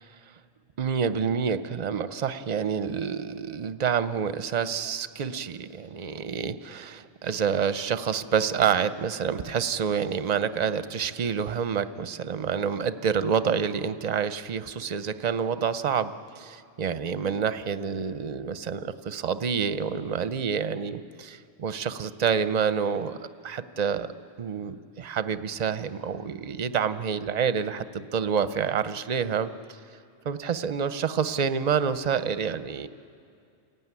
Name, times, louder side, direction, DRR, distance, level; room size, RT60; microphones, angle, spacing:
voice 1, 0.8-23.2 23.4-24.1 24.4-29.5 30.3-32.9, right 7 dB, 45° right, 12 dB, 0.7 m, -28 dB
28.0 x 15.0 x 9.7 m, 2.4 s
omnidirectional pair, 1.1 m